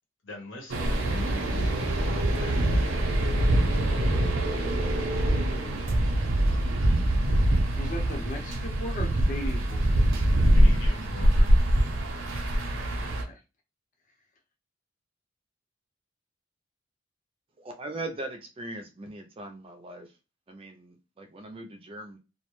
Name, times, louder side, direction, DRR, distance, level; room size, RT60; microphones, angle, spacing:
voice 1, 0.2-1.0 2.0-3.0 10.5-11.5, left 1 dB, 70° left, 0.9 m, -43 dB
sound 1, 0.7-13.2, right 1 dB, 85° right, 0.6 m, -24 dB
voice 2, 7.7-10.0 13.0-13.4, equal, 40° left, 0.6 m, -37 dB
voice 3, 17.6-20.1 20.5-22.2, right 2 dB, 30° right, 0.4 m, -40 dB
2.3 x 2.1 x 3.0 m
head